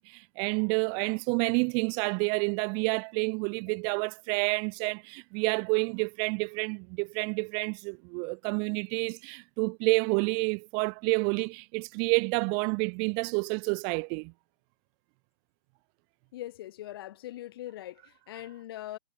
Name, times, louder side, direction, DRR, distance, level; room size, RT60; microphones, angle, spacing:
voice 1, 0.1-14.3, right 40 dB or more, 30° right, 0.5 m, -29 dB
voice 2, 16.3-19.0, left 14 dB, 50° left, 2.4 m, -41 dB
hypercardioid pair, 140°, 15 cm